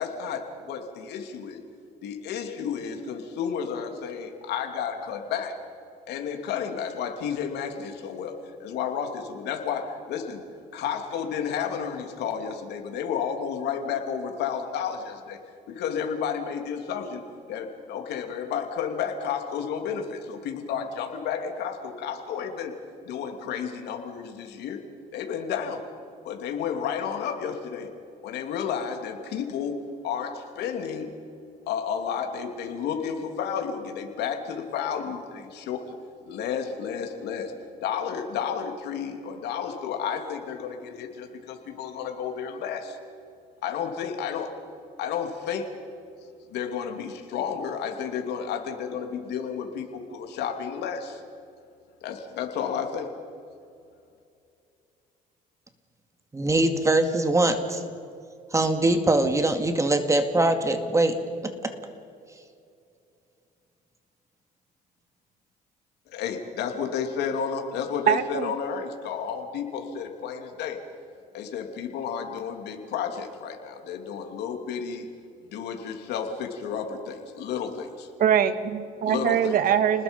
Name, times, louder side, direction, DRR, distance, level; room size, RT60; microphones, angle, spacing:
voice 1, 0.0-1.6 2.0-5.6 6.1-10.4 10.7-15.4 15.7-17.2 17.5-22.7 23.0-24.8 25.1-25.8 26.2-27.9 28.2-29.7 30.0-31.1 31.7-35.9 36.3-37.5 37.8-43.0 43.6-44.5 45.0-45.7 46.5-51.2 52.0-53.2 66.1-70.8 71.3-75.1 75.5-78.1 79.0-79.6, left 7 dB, 80° left, 4 dB, 2.8 m, -31 dB
voice 2, 56.3-57.8 58.5-61.2 61.4-61.7, right 2 dB, 20° right, 7 dB, 2.1 m, -22 dB
voice 3, 68.1-68.5 78.2-80.0, right 9 dB, 60° right, 10 dB, 1.7 m, -22 dB
30.0 x 20.0 x 5.4 m, 2.5 s
cardioid pair, 110°, 17 cm